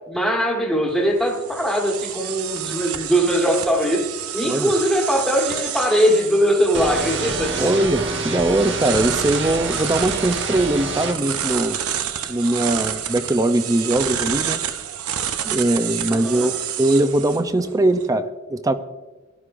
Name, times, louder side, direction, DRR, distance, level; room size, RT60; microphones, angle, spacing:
voice 1, 0.0-4.1 4.3-7.7 16.1-16.5, equal, ahead, -2 dB, 1.4 m, -21 dB
sound 1, 0.9-18.1, right 9 dB, 90° right, 0.8 m, -29 dB
sound 2, 6.7-11.1, right 3 dB, 55° right, 1.2 m, -27 dB
voice 2, 7.6-11.8 12.3-14.6 15.4-18.7, right 1 dB, 15° right, 9 dB, 0.5 m, -21 dB
17.5 x 11.5 x 2.5 m, 1.2 s
head